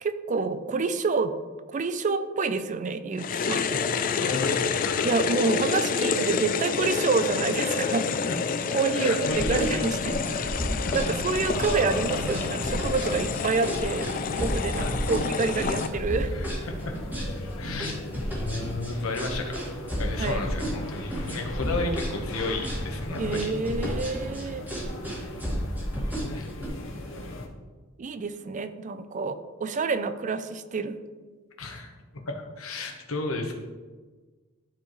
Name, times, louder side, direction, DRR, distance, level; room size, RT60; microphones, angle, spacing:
voice 1, 0.0-1.4 1.7-3.7 5.0-8.1 8.7-10.5 10.9-14.1 14.4-16.3 20.2-20.4 23.2-24.6 28.0-31.0, right 4 dB, 35° right, 11 dB, 0.4 m, -28 dB
sound 1, 3.2-15.9, left 5 dB, 40° left, 0.4 m, -28 dB
voice 2, 4.2-5.2 8.3-8.4 8.9-9.8 10.4-10.9 14.8-14.9 16.3-16.5 16.8-16.9 17.6-18.0 18.4-19.6 20.0-23.5 25.1-25.3 26.3-26.5 31.6-33.6, left 3 dB, 85° left, 3 dB, 1.1 m, -33 dB
sound 2, 9.4-26.7, equal, 10° right, 1.9 m, -32 dB
sound 3, 11.3-27.5, left 1 dB, 65° left, 1.1 m, -38 dB
12.5 x 4.5 x 3.1 m, 1.4 s
head